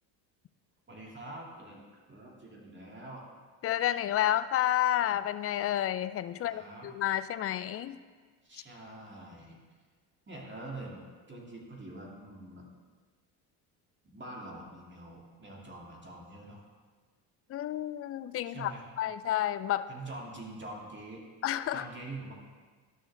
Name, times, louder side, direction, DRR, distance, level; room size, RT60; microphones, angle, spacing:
voice 1, 0.9-3.3 6.3-6.9 8.4-9.6 10.3-11.0 11.3-12.7 14.0-16.6 18.4-18.8 19.9-21.2 21.7-22.3, right 2 dB, 25° right, -2 dB, 2.5 m, -45 dB
voice 2, 3.6-8.0 17.5-18.7 19.0-19.9 21.4-21.8, left 12 dB, 30° left, 14 dB, 0.4 m, -30 dB
12.5 x 6.3 x 3.4 m, 1.5 s
hypercardioid pair, 75°, 47 cm